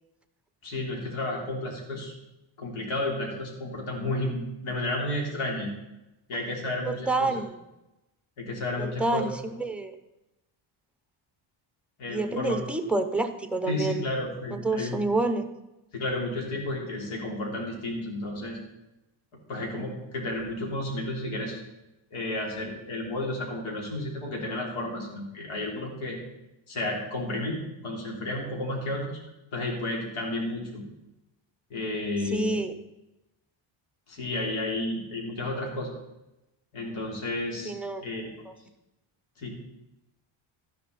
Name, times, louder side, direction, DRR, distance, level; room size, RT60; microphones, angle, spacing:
voice 1, 0.6-2.1 2.6-5.7 6.3-7.3 8.4-9.3 12.0-12.6 13.7-15.0 15.9-18.6 19.5-21.6 22.1-26.2 26.7-29.2 29.5-30.8 31.7-32.6 34.1-35.9 36.7-37.7 38.0-38.3 39.4-39.6, left 1 dB, 75° left, -1 dB, 3.9 m, -32 dB
voice 2, 6.8-7.4 8.8-9.9 12.1-14.0 14.5-15.5 32.2-32.7 37.6-38.0 38.5-38.6, right 2 dB, ahead, 8 dB, 0.7 m, -28 dB
13.0 x 10.5 x 4.1 m, 0.94 s
cardioid pair, 155°, 49 cm